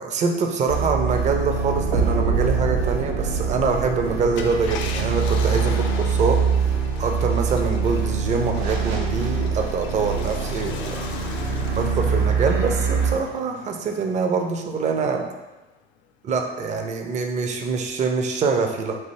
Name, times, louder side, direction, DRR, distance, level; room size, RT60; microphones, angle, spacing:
voice 1, 0.0-6.4 7.0-11.1 11.7-15.2 16.2-19.0, right 4 dB, 25° right, 4 dB, 0.4 m, -24 dB
sound 1, 0.7-13.1, right 5 dB, 75° right, 0.6 m, -24 dB
Car, 4.2-15.0 15.5-15.6 17.7-17.9, left 5 dB, 40° left, 0.4 m, -37 dB
3.4 x 2.5 x 2.9 m, 1.1 s
figure-of-eight pair, 70°, 31 cm